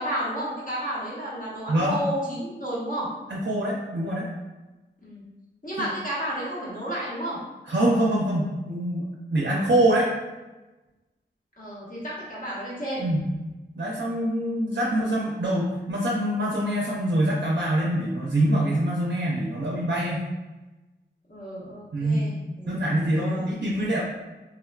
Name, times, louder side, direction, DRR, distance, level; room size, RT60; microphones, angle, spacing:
voice 1, 0.0-3.1 5.0-5.2 5.6-7.4 11.6-13.0 21.3-22.8 23.1-23.5, equal, 45° left, -7 dB, 1.1 m, -32 dB
voice 2, 3.3-4.3 5.8-5.9 7.7-10.1 13.0-13.3 13.8-20.3 21.9-22.3 22.6-24.0, right 1 dB, 60° right, -4 dB, 0.5 m, -24 dB
3.4 x 2.3 x 2.2 m, 1.1 s
wide cardioid pair, 55°, 20 cm